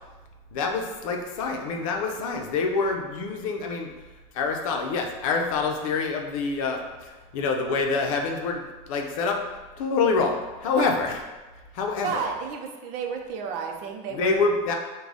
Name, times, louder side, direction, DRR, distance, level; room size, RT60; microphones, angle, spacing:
voice 1, 0.5-3.9 4.3-9.4 9.8-11.2 11.7-12.3 14.1-14.7, left 4 dB, 85° left, 3 dB, 0.6 m, -26 dB
voice 2, 12.0-14.5, right 6 dB, 50° right, 3 dB, 0.6 m, -32 dB
4.7 x 2.3 x 3.9 m, 1.2 s
supercardioid pair, 155°, 17 cm